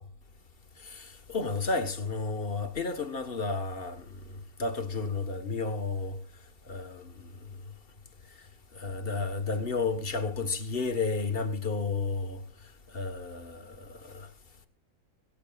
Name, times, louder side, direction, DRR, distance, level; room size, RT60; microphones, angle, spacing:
voice 1, 0.8-6.2 6.7-7.3 8.7-12.4 12.9-14.3, left 4 dB, 40° left, 1.7 m, -32 dB
24.5 x 14.5 x 2.5 m
omnidirectional pair, 1.5 m